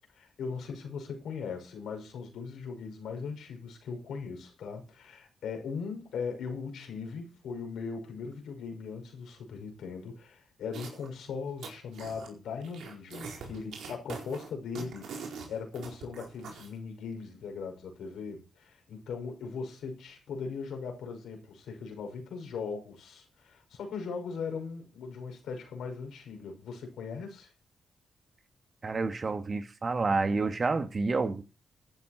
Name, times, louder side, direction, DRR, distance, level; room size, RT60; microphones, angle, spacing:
voice 1, 0.1-27.5, left 5 dB, 80° left, 5.9 m, -39 dB
sound 1, 10.7-11.1 11.4-12.3 12.6-16.7, right 5 dB, 80° right, 4.5 m, -43 dB
voice 2, 28.8-31.4, right 3 dB, 45° right, 2.4 m, -29 dB
14.5 x 11.0 x 4.5 m
supercardioid pair, 45°, 0 cm